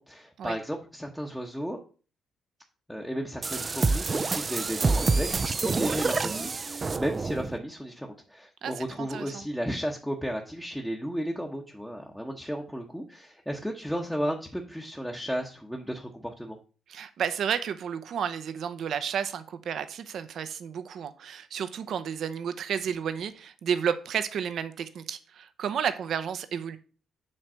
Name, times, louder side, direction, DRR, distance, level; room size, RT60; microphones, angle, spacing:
voice 1, 0.0-1.8 2.9-16.6, equal, ahead, 1.0 m, -34 dB
sound 1, 3.4-7.6, right 3 dB, 30° right, 0.4 m, -27 dB
voice 2, 8.6-9.4 16.9-26.8, right 8 dB, 65° right, 0.7 m, -32 dB
7.6 x 3.2 x 6.2 m
cardioid pair, 90°, 0 cm